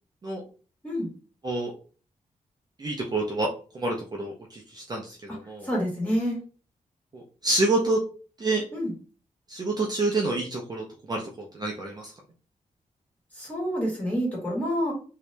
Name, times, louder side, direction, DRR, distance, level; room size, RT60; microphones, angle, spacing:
voice 1, 2.8-3.5 3.7-5.7 7.1-8.0 8.4-8.6 9.5-12.1, right 2 dB, 30° right, -1 dB, 0.6 m, -28 dB
voice 2, 5.6-6.4 8.7-8.9 13.4-14.9, equal, 10° left, -4 dB, 1.8 m, -27 dB
3.0 x 2.8 x 3.3 m, 0.37 s
wide cardioid pair, 155°, 14 cm